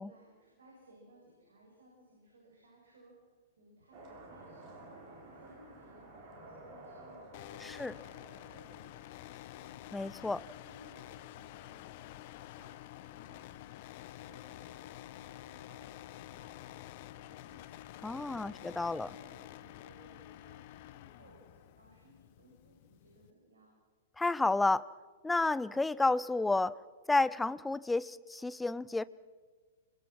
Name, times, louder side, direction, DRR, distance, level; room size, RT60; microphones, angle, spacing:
voice 1, 0.0-3.1 3.5-9.9 10.6-17.8 18.1-23.7, right 1 dB, 65° right, -2 dB, 7.7 m, -61 dB
sound 1, 3.9-9.9, right 2 dB, 35° right, 6.4 m, -53 dB
sound 2, 7.3-23.3, left 14 dB, 45° left, 0.8 m, -49 dB
voice 2, 7.6-7.9 9.9-10.4 18.0-19.1 24.2-24.9 25.2-26.8 27.1-29.0, left 2 dB, 5° left, 19 dB, 0.6 m, -31 dB
26.5 x 23.0 x 6.1 m, 1.5 s
figure-of-eight pair, 105°, 0 cm